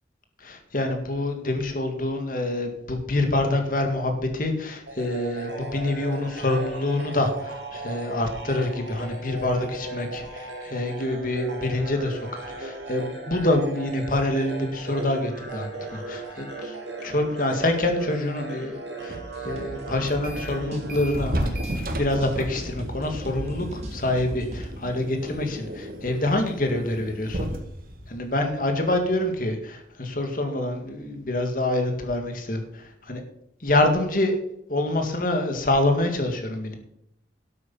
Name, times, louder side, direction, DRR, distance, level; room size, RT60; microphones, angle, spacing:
voice 1, 0.4-16.7 17.0-21.6 21.9-27.5 28.1-33.2 33.6-34.4 34.7-36.8, left 1 dB, 50° left, 5 dB, 2.0 m, -26 dB
sound 1, 4.9-21.6, right 3 dB, 85° right, 3.3 m, -37 dB
sound 2, 19.1-24.6, right 1 dB, 35° right, 2.6 m, -37 dB
sound 3, 20.1-20.6 20.9-29.4, right 1 dB, 55° right, 1.8 m, -34 dB
11.5 x 8.5 x 5.6 m, 0.75 s
head